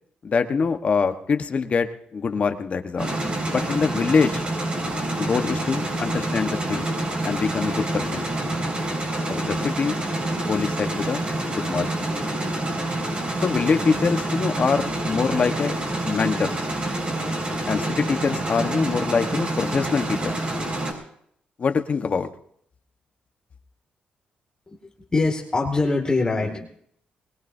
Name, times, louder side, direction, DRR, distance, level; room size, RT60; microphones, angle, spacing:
voice 1, 0.2-3.2 3.5-4.4 5.2-6.8 7.2-8.3 9.3-10.0 10.4-11.2 11.5-12.2 13.4-15.7 16.0-16.5 17.6-20.4 21.6-22.3, left 5 dB, 45° left, 8 dB, 1.2 m, -24 dB
sound 1, 3.0-20.9, right 1 dB, 40° right, 5.5 m, -27 dB
voice 2, 25.1-26.7, left 3 dB, 25° left, 1 dB, 2.3 m, -23 dB
21.5 x 20.5 x 2.7 m, 0.65 s
cardioid pair, 110°, 3 cm